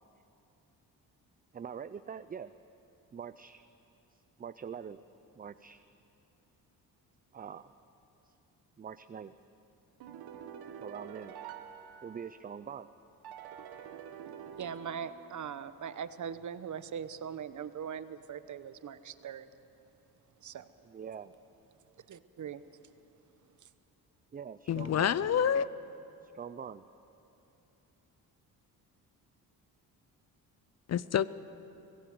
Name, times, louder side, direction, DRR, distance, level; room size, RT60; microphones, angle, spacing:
voice 1, 1.5-2.5 3.1-3.7 4.1-5.0 5.4-5.8 7.3-7.7 8.2-8.3 8.8-9.3 10.8-11.3 12.0-12.9 20.8-21.3 24.3-25.3 26.2-26.9, right 7 dB, 25° right, 12 dB, 0.5 m, -44 dB
sound 1, 10.0-12.6 13.2-15.7, right 8 dB, 85° right, 1.4 m, -47 dB
voice 2, 14.6-19.5 20.4-20.7 22.1-22.6, right 8 dB, 50° right, 13 dB, 1.0 m, -41 dB
voice 3, 24.7-25.7 30.9-31.3, left 8 dB, 45° left, 17 dB, 0.6 m, -27 dB
24.0 x 17.0 x 7.8 m, 2.9 s
cardioid pair, 95°, 37 cm